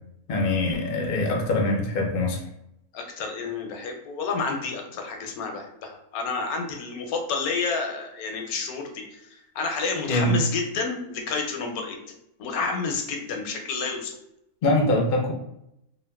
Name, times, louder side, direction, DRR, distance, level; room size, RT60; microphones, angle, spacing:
voice 1, 0.3-2.4 10.1-10.3 14.6-15.3, left 2 dB, 65° left, 0 dB, 0.5 m, -23 dB
voice 2, 2.9-12.0 12.4-14.1, left 4 dB, 85° left, 2 dB, 1.1 m, -30 dB
2.8 x 2.4 x 2.2 m, 0.81 s
omnidirectional pair, 1.5 m